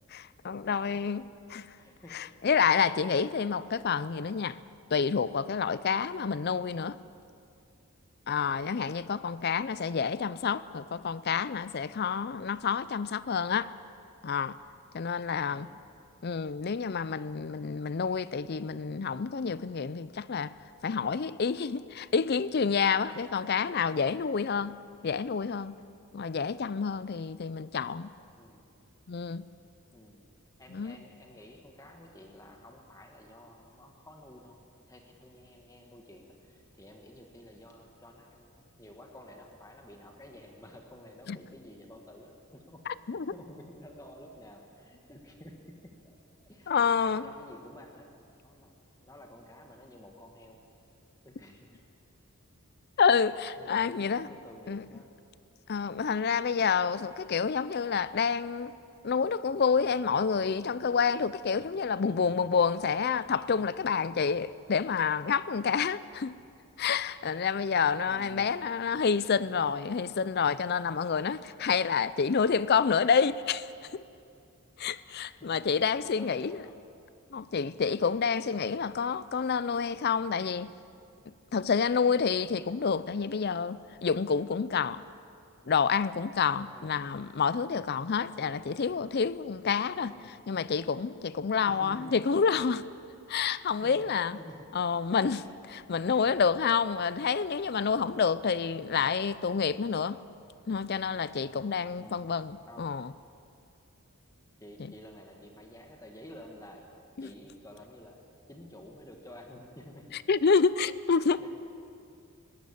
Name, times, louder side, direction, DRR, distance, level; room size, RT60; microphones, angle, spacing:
voice 1, 0.1-1.2 1.5-1.7 2.1-4.6 4.9-7.0 8.3-13.7 14.2-14.6 14.9-15.7 16.2-20.5 20.8-24.7 25.0-25.7 26.1-28.1 29.1-29.4 30.7-30.9 41.3-41.4 42.9-43.3 46.7-47.3 53.0-54.3 54.7-54.8 55.7-58.7 59.0-66.4 66.8-74.0 74.8-76.6 77.3-80.7 81.5-85.0 85.7-90.1 90.5-92.9 93.3-94.4 94.7-100.2 100.7-103.1 107.2-107.3 110.3-111.5, left 6 dB, 50° left, 0.5 m, -28 dB
voice 2, 0.7-1.0 1.8-2.2 5.7-5.8 15.4-15.8 28.4-28.7 29.9-30.2 30.6-34.6 34.9-48.1 48.4-48.8 49.0-50.6 51.2-51.8 53.0-53.2 53.6-55.1 68.1-68.6 75.4-75.7 75.9-76.8 86.7-87.0 88.4-88.7 90.1-90.4 91.7-92.2 93.8-94.7 95.4-95.6 98.8-99.1 102.0-102.2 102.7-103.1 104.6-106.9 107.2-108.2 108.5-110.1 111.1-111.5, left 1 dB, 15° left, 1.6 m, -51 dB
20.5 x 16.5 x 8.5 m
head